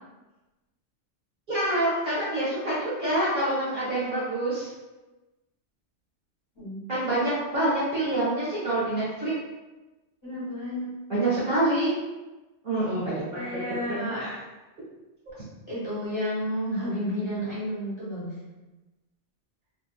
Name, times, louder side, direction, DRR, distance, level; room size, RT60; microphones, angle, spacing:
voice 1, 1.5-4.7 6.9-9.3 11.1-11.9 12.6-13.4 13.9-14.4, right 1 dB, 45° right, -9 dB, 1.1 m, -26 dB
voice 2, 10.2-10.9 13.3-14.4 15.7-18.4, equal, 25° left, -11 dB, 1.2 m, -31 dB
2.6 x 2.5 x 2.3 m, 1.1 s
omnidirectional pair, 1.2 m